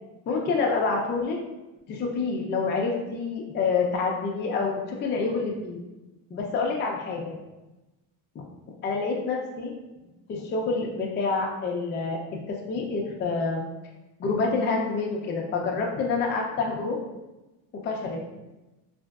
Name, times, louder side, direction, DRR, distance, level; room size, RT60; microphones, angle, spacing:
voice 1, 0.3-1.4 1.9-5.8 6.3-7.4 8.8-9.7 10.3-13.7 14.2-17.0 17.8-18.2, left 4 dB, 30° left, 0 dB, 0.4 m, -27 dB
2.9 x 2.5 x 2.2 m, 1.0 s
cardioid pair, 115°, 41 cm